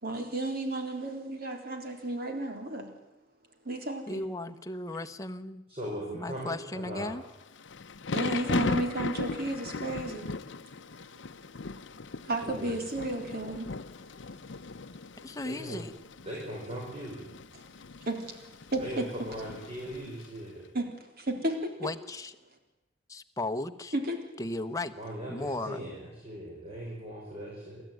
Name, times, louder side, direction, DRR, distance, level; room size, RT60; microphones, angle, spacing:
voice 1, 0.0-2.9 3.7-4.3 8.1-10.3 12.2-13.7 18.1-18.4 18.7-19.1 20.7-21.7 23.9-24.2, right 2 dB, 55° right, 4 dB, 3.8 m, -33 dB
voice 2, 4.1-5.6 6.1-7.2 15.2-15.9 21.8-22.3 23.1-23.9 24.4-24.9 25.3-25.8, left 2 dB, 20° left, 8 dB, 1.0 m, -35 dB
voice 3, 5.7-7.2 12.4-12.8 15.4-15.8 16.2-17.2 18.8-20.7 25.0-26.0 26.2-27.8, equal, 30° right, -3 dB, 5.9 m, -39 dB
Thunder / Rain, 7.3-20.4, left 4 dB, 70° left, 0.7 m, -38 dB
28.0 x 13.0 x 9.3 m, 0.98 s
head